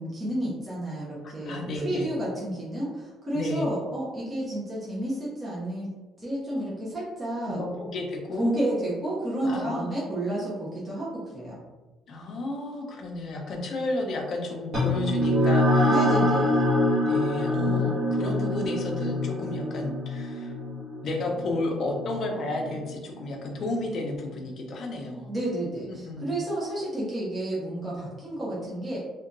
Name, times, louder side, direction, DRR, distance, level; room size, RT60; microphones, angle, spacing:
voice 1, 0.0-5.9 6.2-7.6 8.4-11.6 15.8-16.6 25.1-29.0, right 1 dB, 15° right, -8 dB, 0.5 m, -31 dB
voice 2, 1.4-2.1 3.3-3.7 7.4-8.6 9.4-10.0 12.1-16.0 17.0-20.5 21.0-25.3 25.9-26.4, left 2 dB, 40° left, 1 dB, 0.5 m, -32 dB
sound 1, 14.7-23.6, left 1 dB, 35° right, 1.3 m, -25 dB
2.7 x 2.2 x 2.5 m, 1.2 s
cardioid pair, 175°, 0 cm